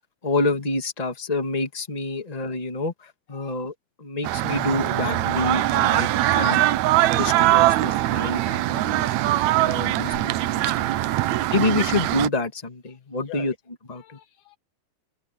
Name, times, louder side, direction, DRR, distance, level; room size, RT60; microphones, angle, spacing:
voice 1, 0.2-6.6 7.1-9.2 9.6-11.0 11.5-13.5 13.9-14.2, left 2 dB, 15° left, 1.9 m, -28 dB
sound 1, 4.2-12.3, right 15 dB, 75° right, 1.7 m, -22 dB
voice 2, 7.4-7.8 9.2-9.4 10.8-11.5 13.3-13.5 13.9-14.6, left 13 dB, 75° left, 2.1 m, -46 dB
Slam, 10.0-11.8 12.1-12.5, left 4 dB, 55° left, 4.2 m, -50 dB
omnidirectional pair, 3.9 m